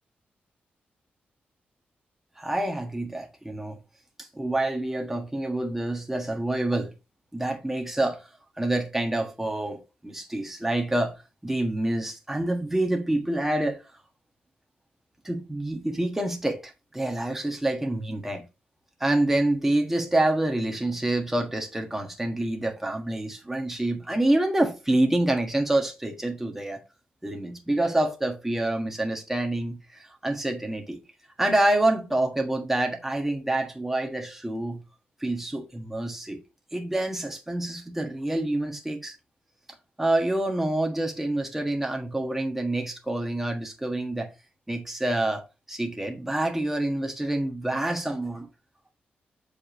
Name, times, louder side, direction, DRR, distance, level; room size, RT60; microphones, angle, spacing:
voice 1, 2.4-3.8 4.2-6.9 7.3-8.3 8.6-11.1 11.4-13.8 15.2-18.4 19.0-26.8 27.2-31.0 31.4-34.8 35.2-36.4 36.7-39.2 40.0-44.3 44.7-45.4 45.7-48.5, right 1 dB, 10° right, 1.4 m, -27 dB
7.4 x 5.1 x 2.9 m
wide cardioid pair, 145°, 4 cm